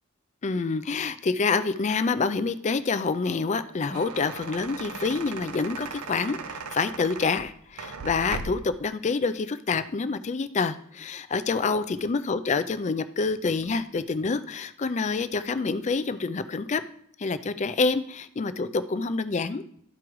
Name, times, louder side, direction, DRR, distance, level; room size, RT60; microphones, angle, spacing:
voice 1, 0.4-16.8 17.2-19.6, left 4 dB, 30° left, 12 dB, 0.4 m, -27 dB
sound 1, 3.6-8.8, right 4 dB, 90° right, 0.6 m, -38 dB
13.0 x 4.8 x 3.1 m, 0.66 s
head